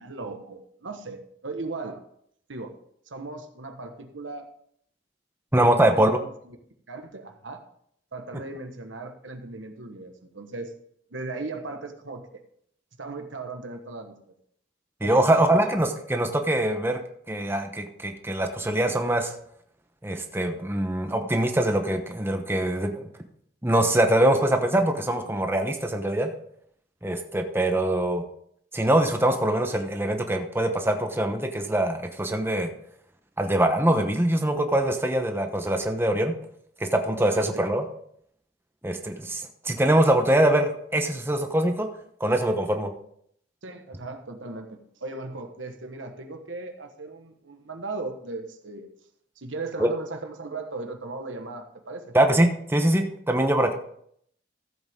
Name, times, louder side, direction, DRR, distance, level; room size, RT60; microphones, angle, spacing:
voice 1, 0.0-2.0 2.5-2.7 3.1-4.5 5.7-6.1 6.4-6.6 6.9-7.6 8.1-10.7 11.1-12.4 13.0-14.1 15.0-15.6 37.3-37.7 43.6-48.9 49.4-52.1, right 3 dB, 90° right, 5 dB, 1.4 m, -37 dB
voice 2, 5.5-6.2 15.0-17.0 17.3-19.3 20.0-23.0 23.6-26.3 27.0-28.2 28.7-32.7 33.4-36.3 36.8-37.8 38.8-41.9 42.2-42.9 49.8-49.9 52.1-53.7, right 1 dB, 10° right, 5 dB, 0.9 m, -23 dB
14.5 x 7.9 x 3.7 m, 0.68 s
head